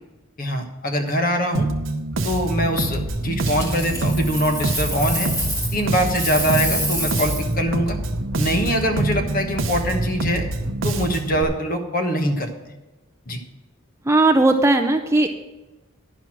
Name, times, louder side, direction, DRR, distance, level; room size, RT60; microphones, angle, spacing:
voice 1, 0.4-1.7 2.2-5.3 5.7-8.0 8.4-10.5 10.8-12.5 13.3-13.4, equal, 40° left, 5 dB, 1.2 m, -23 dB
Bass guitar, 1.5-11.4, right 2 dB, 65° right, 0.8 m, -26 dB
sound 1, 3.1-10.7, equal, 80° right, 1.2 m, -35 dB
Coin (dropping), 3.4-5.8 6.1-7.5 10.4-10.6, equal, 15° left, 1.7 m, -28 dB
voice 2, 14.1-15.3, right 2 dB, 15° right, 5 dB, 0.4 m, -17 dB
10.5 x 6.0 x 6.0 m, 1.1 s
head